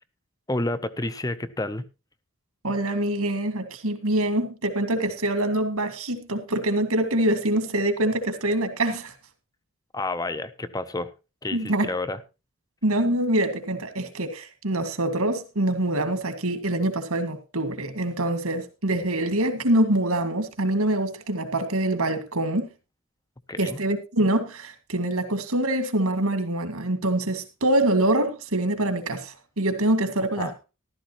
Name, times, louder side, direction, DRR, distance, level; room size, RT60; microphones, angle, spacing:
voice 1, 0.5-1.8 9.9-11.1 11.4-12.2 23.5-23.8 30.4-30.5, left 2 dB, 15° left, 0.6 m, -30 dB
voice 2, 2.6-9.1 11.5-11.9 12.8-22.7 23.6-30.6, right 1 dB, 80° right, 1.9 m, -25 dB
14.0 x 12.5 x 3.0 m
head